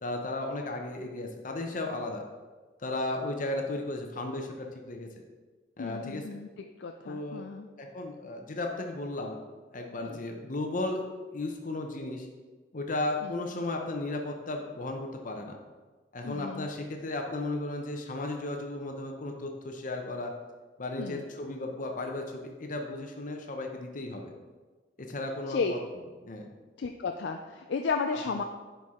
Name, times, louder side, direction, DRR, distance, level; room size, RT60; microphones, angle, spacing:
voice 1, 0.0-2.2 2.8-5.1 5.8-6.2 7.0-7.4 7.8-9.4 9.7-11.0 11.3-12.3 12.7-15.6 16.1-20.3 20.8-24.3 25.0-25.8 26.2-26.5 28.3-28.4, left 2 dB, 50° left, 2 dB, 0.8 m, -35 dB
voice 2, 5.8-6.5 6.8-7.7 10.0-10.2 13.2-13.4 16.2-16.7 21.0-21.2 25.5-25.7 26.8-28.4, left 4 dB, 80° left, 5 dB, 0.4 m, -33 dB
10.5 x 4.5 x 3.6 m, 1.3 s
head